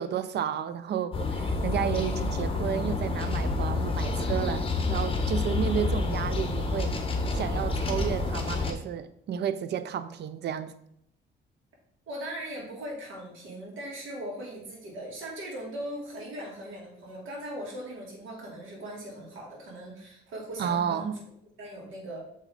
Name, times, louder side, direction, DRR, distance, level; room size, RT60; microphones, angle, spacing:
voice 1, 0.0-7.0 7.3-10.7 20.6-21.2, right 9 dB, 60° right, 0.5 m, -32 dB
sound 1, 1.1-8.7, left 3 dB, 25° left, 1.1 m, -28 dB
voice 2, 12.1-21.2 21.6-22.2, right 1 dB, 85° right, 2.5 m, -39 dB
6.6 x 4.9 x 3.8 m
cardioid pair, 90°, 20 cm